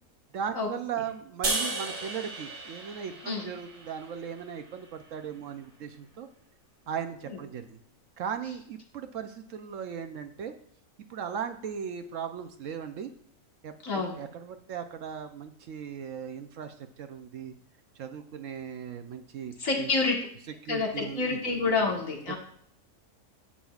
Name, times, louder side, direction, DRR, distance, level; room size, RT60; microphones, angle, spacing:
voice 1, 0.3-6.3 6.9-7.8 8.2-10.5 11.1-13.1 13.6-17.5 18.0-19.9 20.6-21.4, right 7 dB, 65° right, 8 dB, 0.9 m, -37 dB
sound 1, 1.4-4.7, right 2 dB, 90° right, 2.6 m, -34 dB
voice 2, 13.8-14.2 19.6-20.2 20.7-22.4, left 4 dB, 60° left, 0 dB, 1.9 m, -28 dB
11.0 x 7.6 x 2.4 m, 0.63 s
omnidirectional pair, 1.6 m